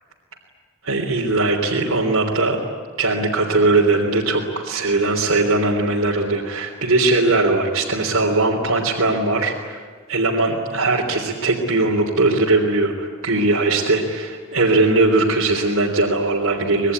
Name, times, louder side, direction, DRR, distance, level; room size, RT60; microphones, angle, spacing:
voice 1, 0.8-2.6 3.0-9.8 10.1-16.9, right 2 dB, 65° right, -2 dB, 3.4 m, -19 dB
26.0 x 20.5 x 9.7 m, 1.5 s
head